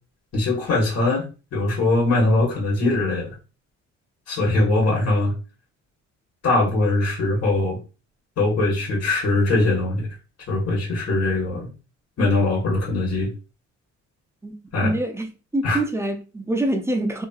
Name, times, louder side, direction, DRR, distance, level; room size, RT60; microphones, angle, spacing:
voice 1, 0.3-1.2 1.5-3.3 4.3-5.3 6.4-7.8 8.4-10.1 10.5-11.7 12.2-13.3 14.7-14.9 15.6-15.8, left 2 dB, 55° left, 1.4 m, -21 dB
voice 2, 14.8-17.3, right 1 dB, 10° right, 0.5 m, -25 dB
2.8 x 2.7 x 2.3 m
cardioid pair, 90°, 30 cm